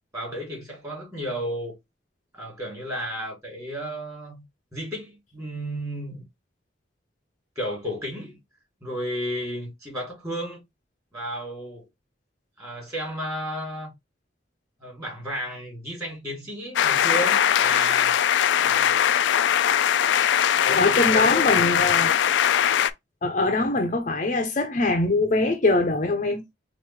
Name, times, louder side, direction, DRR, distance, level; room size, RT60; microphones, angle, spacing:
voice 1, 0.1-1.8 2.3-4.4 4.7-6.3 7.5-8.4 8.8-10.6 11.1-11.9 12.6-13.9 14.8-18.2 18.6-18.9 20.6-21.9, equal, 15° right, 3.0 m, -33 dB
sound 1, 16.8-22.9, left 9 dB, 80° left, 0.4 m, -21 dB
voice 2, 20.7-22.1 23.2-26.4, left 2 dB, 45° left, 0.7 m, -22 dB
4.7 x 2.6 x 3.3 m
head